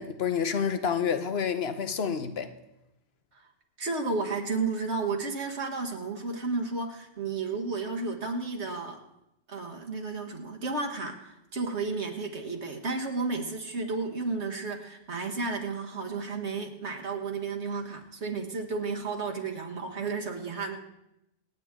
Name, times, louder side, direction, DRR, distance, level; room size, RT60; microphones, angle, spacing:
voice 1, 0.0-2.5, left 7 dB, 65° left, 1.2 m, -29 dB
voice 2, 3.8-9.0 9.5-20.8, right 4 dB, 75° right, 1.8 m, -32 dB
27.0 x 9.0 x 3.7 m
omnidirectional pair, 1.2 m